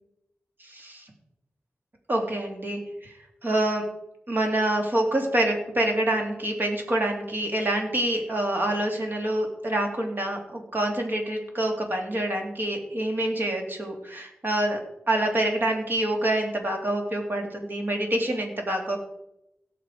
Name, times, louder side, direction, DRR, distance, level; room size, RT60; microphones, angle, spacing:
voice 1, 0.7-1.0 2.1-3.1 3.4-3.8 4.3-14.8 15.1-19.0, right 1 dB, 50° right, 2 dB, 2.8 m, -26 dB
17.0 x 6.9 x 4.8 m, 0.83 s
wide cardioid pair, 80°, 5 cm